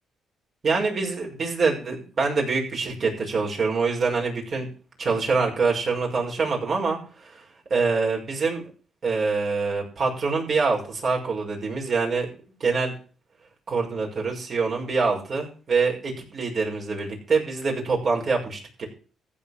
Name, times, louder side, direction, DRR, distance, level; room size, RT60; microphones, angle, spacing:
voice 1, 0.6-4.7 5.0-8.6 9.0-12.3 12.6-12.9 13.7-18.9, right 4 dB, 50° right, -1 dB, 5.9 m, -25 dB
15.0 x 5.6 x 8.2 m, 0.38 s
cardioid pair, 90°, 0 cm